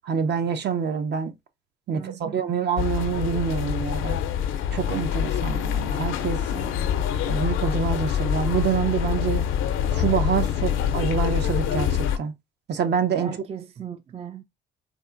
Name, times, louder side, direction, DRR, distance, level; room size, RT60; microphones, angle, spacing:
voice 1, 0.0-1.3 1.9-4.2 4.7-6.4 7.3-9.5 9.9-11.9 12.2-12.3 12.7-13.4, right 7 dB, 60° right, 0.7 m, -26 dB
voice 2, 1.9-2.4 6.4-7.0 13.2-14.4, right 8 dB, 30° right, 0.3 m, -38 dB
sound 1, 2.8-12.2, left 9 dB, 85° left, 0.5 m, -25 dB
4.1 x 2.5 x 2.4 m
cardioid pair, 90°, 20 cm